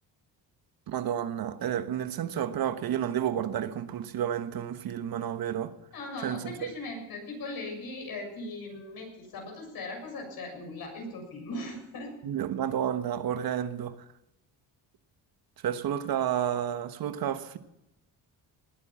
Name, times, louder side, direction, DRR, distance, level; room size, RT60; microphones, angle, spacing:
voice 1, 0.9-5.7 6.2-6.7 12.2-14.0 15.6-17.6, right 10 dB, 60° right, 1.2 m, -31 dB
voice 2, 5.9-12.1, left 2 dB, 60° left, 7.0 m, -39 dB
19.5 x 9.3 x 7.4 m
cardioid pair, 100°, 40 cm